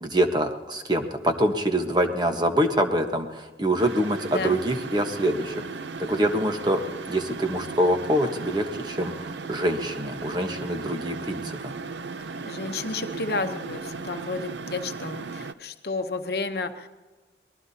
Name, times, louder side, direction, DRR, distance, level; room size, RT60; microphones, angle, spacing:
voice 1, 0.0-5.6 6.0-11.7, right 1 dB, 25° right, 5 dB, 1.2 m, -25 dB
sound 1, 3.8-15.5, right 4 dB, 90° right, 0.6 m, -36 dB
voice 2, 12.4-16.9, left 3 dB, 65° left, 7 dB, 0.9 m, -31 dB
24.0 x 20.0 x 2.8 m, 1.3 s
head